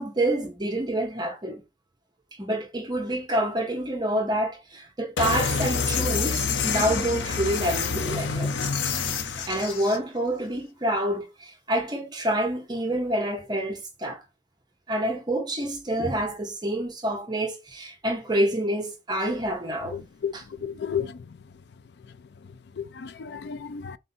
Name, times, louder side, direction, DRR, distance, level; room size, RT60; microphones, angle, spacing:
voice 1, 0.0-1.6 2.4-8.5 9.5-14.2 14.9-20.0 20.3-20.4, right 1 dB, 25° right, 0.8 m, -27 dB
sound 1, 5.2-10.0, left 5 dB, 85° left, 0.7 m, -27 dB
voice 2, 19.9-20.3 20.6-21.2 22.8-24.0, left 7 dB, 60° left, 0.4 m, -32 dB
3.9 x 2.6 x 4.1 m
head